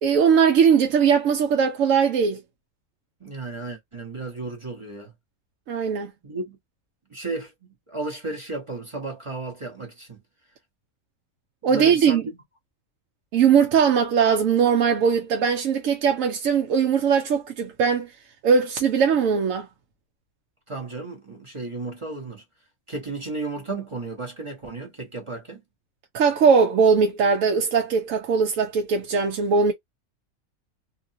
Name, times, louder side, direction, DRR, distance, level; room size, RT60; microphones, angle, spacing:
voice 1, 0.0-2.4 5.7-6.1 11.6-12.2 13.3-18.1 18.4-19.7 26.1-29.7, right 6 dB, 70° right, 1.0 m, -20 dB
voice 2, 3.2-5.1 6.2-6.6 7.1-7.5 7.9-10.2 11.6-12.4 20.7-22.4 22.9-25.6, right 3 dB, 25° right, 0.8 m, -33 dB
2.8 x 2.6 x 2.6 m
omnidirectional pair, 1.5 m